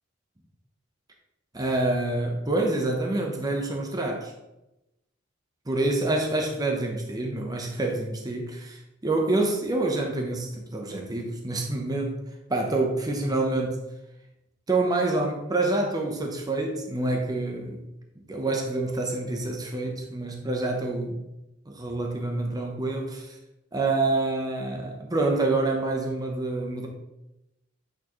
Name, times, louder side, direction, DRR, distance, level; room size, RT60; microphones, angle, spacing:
voice 1, 1.5-4.3 5.7-8.8 9.0-12.2 12.5-13.8 14.7-17.8 18.3-21.2 21.7-23.3 23.7-26.9, right 2 dB, 20° right, 1 dB, 0.8 m, -27 dB
8.5 x 4.5 x 3.1 m, 0.91 s
head